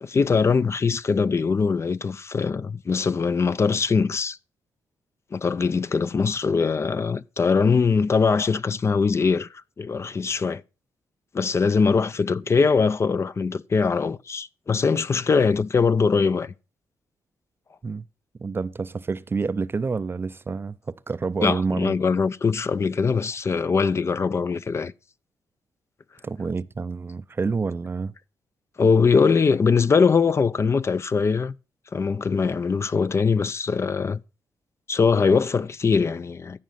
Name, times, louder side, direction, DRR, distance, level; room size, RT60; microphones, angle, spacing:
voice 1, 0.0-4.4 5.3-9.5 9.8-10.6 11.3-16.5 21.4-24.9 28.8-31.5 31.9-34.2 34.9-36.6, left 5 dB, 40° left, 0.5 m, -22 dB
voice 2, 18.4-21.9 26.2-28.1, right 4 dB, 30° right, 0.5 m, -28 dB
14.0 x 5.2 x 5.7 m
cardioid pair, 80°, 7 cm